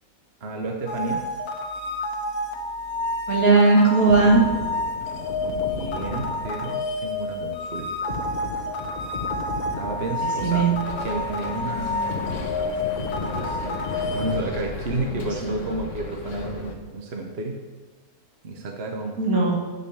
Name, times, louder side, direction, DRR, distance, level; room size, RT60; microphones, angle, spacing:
voice 1, 0.4-1.2 5.4-8.2 9.8-10.7 11.0-12.4 13.1-17.6 18.4-19.5, right 3 dB, 45° right, 1 dB, 1.2 m, -32 dB
sound 1, 0.9-14.4, left 2 dB, 75° left, 1.4 m, -30 dB
voice 2, 3.3-4.4 10.4-10.8 15.4-15.5 19.2-19.6, right 3 dB, 65° right, -2 dB, 2.4 m, -17 dB
sound 2, 4.0-11.5 11.8-15.5 15.8-16.0, left 3 dB, 35° left, 1.1 m, -36 dB
Bus, 10.8-16.8, left 4 dB, 55° left, 1.3 m, -35 dB
10.0 x 5.5 x 7.1 m, 1.3 s
omnidirectional pair, 1.6 m